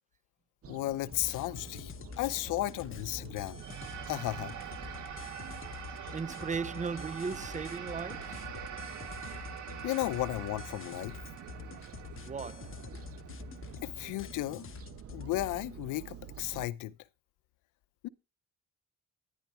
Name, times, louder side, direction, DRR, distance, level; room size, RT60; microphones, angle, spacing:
sound 1, 0.6-16.7, right 9 dB, 50° right, 0.9 m, -49 dB
voice 1, 0.7-3.6 4.1-4.5 6.0-6.1 9.8-11.2 13.8-14.7 15.1-16.9 18.0-18.1, left 16 dB, 90° left, 0.7 m, -34 dB
sound 2, 1.1-15.5, left 7 dB, 45° left, 0.8 m, -47 dB
sound 3, 3.5-14.1, right 9 dB, 70° right, 2.2 m, -45 dB
voice 2, 5.6-8.6 12.1-12.8, right 5 dB, 25° right, 0.5 m, -38 dB
11.0 x 10.5 x 4.3 m
cardioid pair, 90°, 30 cm